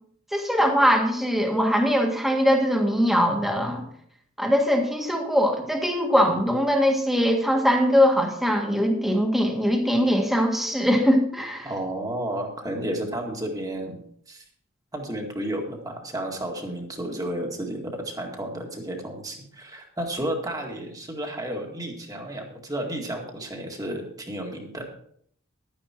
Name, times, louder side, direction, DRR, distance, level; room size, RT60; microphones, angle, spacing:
voice 1, 0.3-3.8 4.4-11.7, equal, ahead, 2 dB, 1.7 m, -21 dB
voice 2, 11.6-14.0 14.3-14.4 14.9-24.8, right 1 dB, 15° right, 1 dB, 2.0 m, -32 dB
11.5 x 9.7 x 4.4 m, 0.65 s
head